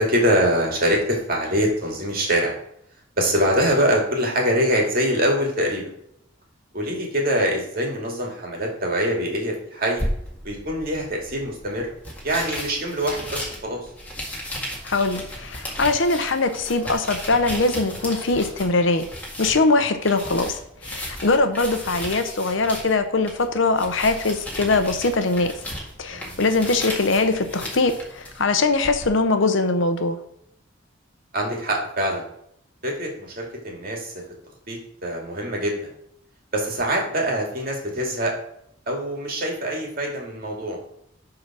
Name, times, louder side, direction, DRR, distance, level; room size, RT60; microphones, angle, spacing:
voice 1, 0.0-2.5 3.2-5.9 6.7-10.0 10.4-11.9 12.2-13.9 26.1-26.4 31.3-32.2 32.8-34.1 34.7-35.8 36.5-38.4 38.9-40.8, equal, 45° right, 0 dB, 2.2 m, -24 dB
sound 1, 10.0-29.1, equal, 10° left, 1.9 m, -35 dB
voice 2, 14.8-19.0 19.4-25.5 26.0-30.2, left 3 dB, 70° left, 8 dB, 0.8 m, -22 dB
9.5 x 3.9 x 6.1 m, 0.73 s
head